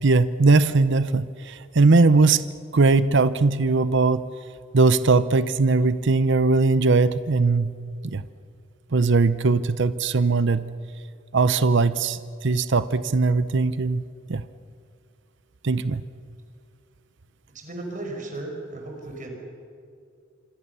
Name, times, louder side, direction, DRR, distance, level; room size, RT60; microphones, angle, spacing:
voice 1, 0.0-2.4 2.7-4.2 4.7-7.7 8.0-8.2 8.9-10.6 11.3-14.0 14.3-14.4 15.6-16.0, right 3 dB, 65° right, 14 dB, 0.7 m, -20 dB
voice 2, 17.5-19.3, right 2 dB, 40° right, 2 dB, 5.3 m, -35 dB
27.0 x 25.0 x 6.9 m, 2.3 s
head